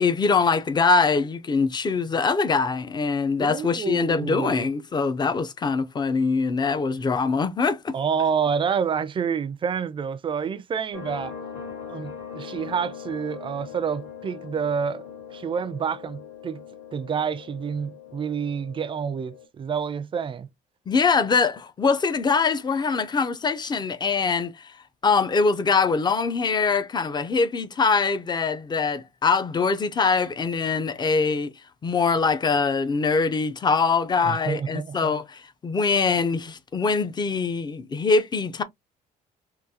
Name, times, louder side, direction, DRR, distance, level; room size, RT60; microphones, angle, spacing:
voice 1, 0.0-7.9 20.9-24.7 25.0-31.5 31.8-38.6, left 4 dB, 25° left, 0.5 m, -23 dB
voice 2, 3.4-4.7 7.9-11.3 11.9-15.0 15.3-16.6 16.9-20.5 34.2-35.2, right 6 dB, 30° right, 0.4 m, -28 dB
sound 1, 10.9-19.5, left 7 dB, 90° left, 1.8 m, -41 dB
3.8 x 2.3 x 2.7 m
cardioid pair, 110°, 17 cm